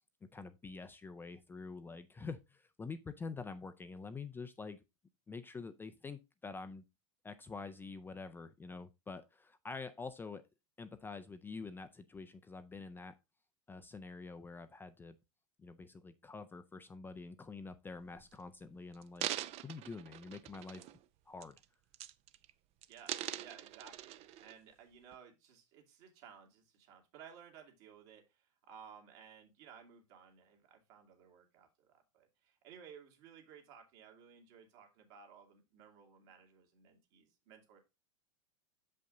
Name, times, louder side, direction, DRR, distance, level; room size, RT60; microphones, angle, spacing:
voice 1, 0.3-4.8 5.3-6.8 7.2-10.4 10.8-13.1 13.7-15.2 15.6-19.3 19.6-20.8 21.3-21.6, left 4 dB, 10° left, 0.4 m, -47 dB
sound 1, 18.0-18.3 18.9-21.0 21.4-21.6 21.9-22.5 22.8-24.5 25.1-25.2, right 13 dB, 40° right, 0.5 m, -43 dB
voice 2, 22.9-37.8, right 7 dB, 60° right, 2.3 m, -57 dB
6.7 x 5.4 x 3.7 m
hypercardioid pair, 120°, 17 cm